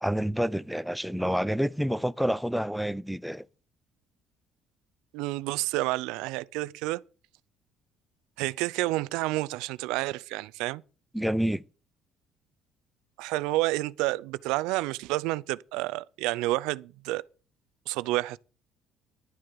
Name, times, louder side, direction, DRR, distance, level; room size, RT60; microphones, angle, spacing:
voice 1, 0.0-3.5 11.1-11.6, equal, ahead, 0.6 m, -28 dB
voice 2, 5.1-7.0 8.4-10.8 13.2-17.2 17.9-18.4, right 19 dB, 85° right, 0.5 m, -29 dB
11.5 x 7.7 x 6.7 m
supercardioid pair, 85°, 0 cm